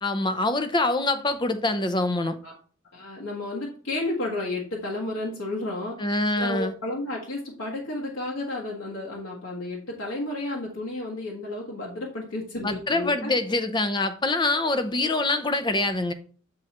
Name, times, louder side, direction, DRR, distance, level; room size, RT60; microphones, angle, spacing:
voice 1, 0.0-2.4 6.0-6.7 12.6-16.1, left 2 dB, 20° left, 0.6 m, -25 dB
voice 2, 2.9-6.0 6.4-13.3, left 2 dB, 75° left, 1.4 m, -32 dB
7.9 x 3.9 x 4.2 m
head